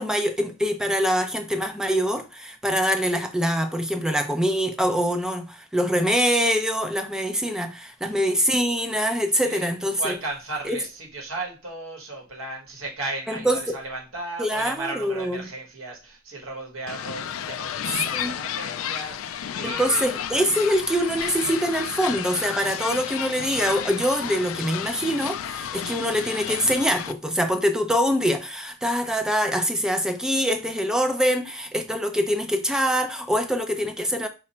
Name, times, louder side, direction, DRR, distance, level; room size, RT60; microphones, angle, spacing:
voice 1, 0.0-10.1 10.6-10.8 13.3-13.8 14.4-15.5 18.1-18.4 19.6-34.3, equal, 5° right, 0.4 m, -24 dB
voice 2, 9.4-9.7 10.0-20.1, right 2 dB, 90° right, 1.5 m, -35 dB
sound 1, 16.9-27.1, left 9 dB, 80° left, 0.3 m, -32 dB
4.8 x 2.2 x 4.3 m
head